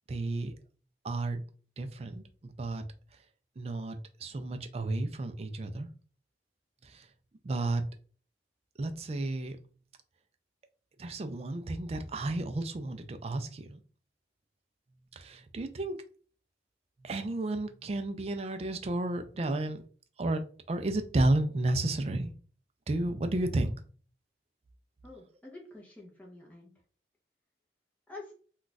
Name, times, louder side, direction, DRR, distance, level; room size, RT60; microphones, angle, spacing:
voice 1, 0.1-0.6 1.0-1.4 1.8-2.2 2.6-2.8 3.6-5.9 6.8-7.1 7.4-7.8 8.8-9.6 11.0-13.8 15.1-16.0 17.0-19.8 20.2-20.4 20.7-22.3 22.9-23.8, right 2 dB, 35° right, 7 dB, 0.3 m, -32 dB
voice 2, 25.0-26.7 28.1-28.3, left 2 dB, 10° left, -2 dB, 0.6 m, -48 dB
2.4 x 2.3 x 3.9 m, 0.41 s
head